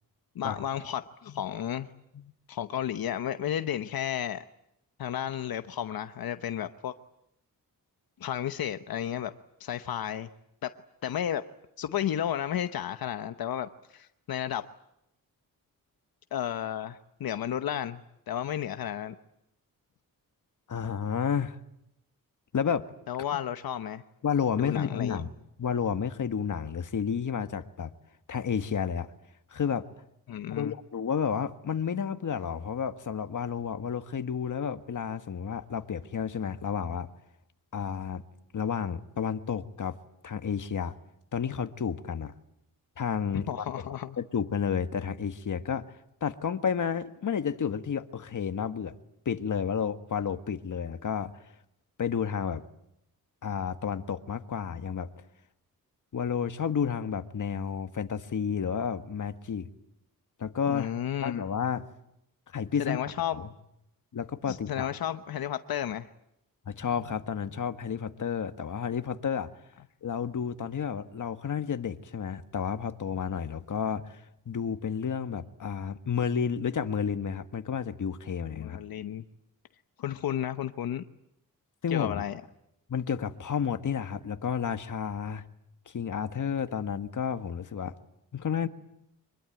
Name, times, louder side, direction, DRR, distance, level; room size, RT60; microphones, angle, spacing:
voice 1, 0.3-1.9 2.5-4.4 5.0-6.9 8.2-9.3 9.6-10.3 10.6-10.8 11.0-11.5 11.8-14.7 16.3-19.1 23.1-24.0 24.5-25.2 30.3-30.7 43.3-44.2 60.7-61.4 62.8-63.4 64.5-66.1 78.6-79.2 80.0-81.0 81.9-82.4, left 10 dB, 85° left, 9 dB, 1.0 m, -32 dB
voice 2, 20.7-21.6 22.5-22.9 23.3-23.4 24.2-25.3 25.6-27.9 28.3-29.1 29.5-29.8 30.5-37.1 37.7-38.2 38.5-40.0 40.2-40.9 41.3-42.3 43.0-43.6 44.2-45.8 46.2-48.9 49.2-51.4 52.0-52.6 53.4-55.1 56.1-59.7 60.4-60.9 61.2-61.8 62.5-63.0 63.3-63.5 64.1-65.0 66.7-69.5 70.0-74.2 74.4-78.8 81.8-82.2 82.9-85.4 85.9-87.9 88.3-88.7, left 7 dB, 60° left, 9 dB, 1.6 m, -31 dB
25.0 x 21.5 x 9.2 m, 0.81 s
cardioid pair, 80°, 35 cm